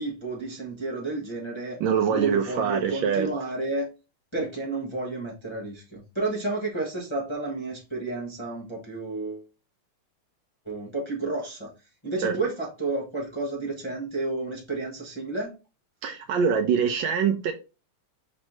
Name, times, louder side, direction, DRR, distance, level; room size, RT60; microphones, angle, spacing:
voice 1, 0.0-1.8 2.1-3.9 4.3-9.4 10.6-11.7 12.0-15.5, right 2 dB, 20° left, 0.8 m, -31 dB
voice 2, 1.8-3.3 12.2-12.4 16.0-17.5, right 7 dB, 75° right, 1.2 m, -24 dB
5.3 x 3.2 x 3.0 m
omnidirectional pair, 2.4 m